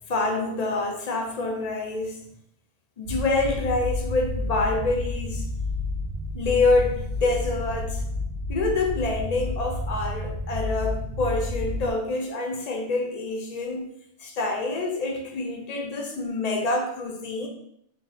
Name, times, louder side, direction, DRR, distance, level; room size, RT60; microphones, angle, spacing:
voice 1, 0.1-2.2 3.0-5.5 6.3-8.0 8.5-13.9 14.2-17.5, left 3 dB, 50° left, 3 dB, 0.5 m, -26 dB
sound 1, 3.0-11.9, left 2 dB, 65° right, 0.8 m, -30 dB
3.9 x 2.1 x 3.4 m, 0.74 s
omnidirectional pair, 1.1 m